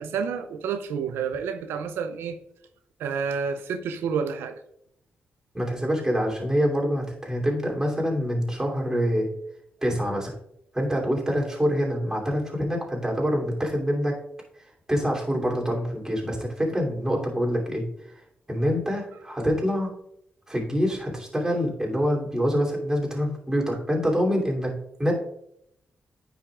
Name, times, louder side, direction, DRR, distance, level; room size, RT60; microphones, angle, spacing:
voice 1, 0.0-2.4 3.0-4.6, right 6 dB, 90° right, 8 dB, 0.5 m, -29 dB
voice 2, 5.5-9.3 9.8-10.3 10.7-14.2 14.9-17.8 18.5-19.9 20.5-25.1, equal, 15° right, -1 dB, 2.9 m, -25 dB
9.6 x 5.8 x 2.4 m, 0.74 s
cardioid pair, 65°, 4 cm